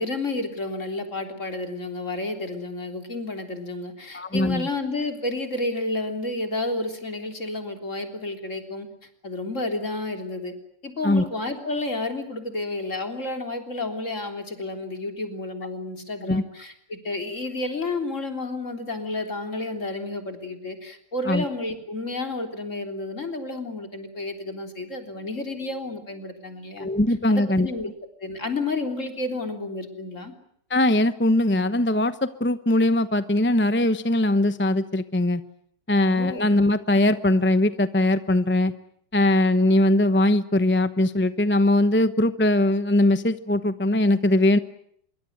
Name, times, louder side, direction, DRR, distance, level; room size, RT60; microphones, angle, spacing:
voice 1, 0.0-8.9 9.2-10.5 10.8-26.9 27.3-27.9 28.2-30.3 36.1-36.6, left 2 dB, 40° left, 5 dB, 3.9 m, -31 dB
voice 2, 4.1-4.7 11.0-11.2 16.3-16.4 21.3-21.4 26.8-27.7 30.7-35.4 35.9-38.7 39.1-44.6, left 1 dB, 10° left, 12 dB, 0.5 m, -21 dB
25.0 x 23.5 x 9.4 m, 0.68 s
omnidirectional pair, 2.0 m